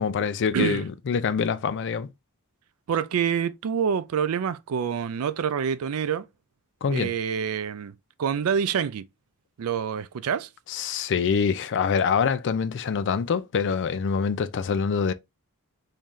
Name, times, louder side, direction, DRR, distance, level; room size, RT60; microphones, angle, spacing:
voice 1, 0.0-2.1 6.8-7.1 10.7-15.1, left 6 dB, 55° left, 0.4 m, -25 dB
voice 2, 0.5-0.8 2.9-6.3 6.9-7.9 8.2-9.1 9.6-10.5, right 7 dB, 70° right, 0.4 m, -26 dB
3.1 x 2.8 x 3.6 m
head